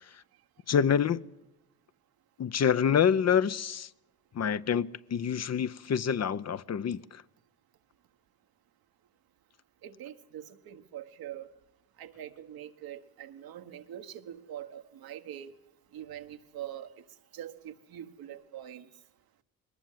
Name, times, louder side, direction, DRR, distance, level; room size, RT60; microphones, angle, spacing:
voice 1, 0.7-1.2 2.4-3.9 4.3-7.2, left 8 dB, 45° left, 0.8 m, -27 dB
voice 2, 9.8-11.5 12.0-15.5 15.9-16.9 17.3-18.9, right 10 dB, 75° right, 1.5 m, -43 dB
21.0 x 19.5 x 7.5 m
supercardioid pair, 60°, 36 cm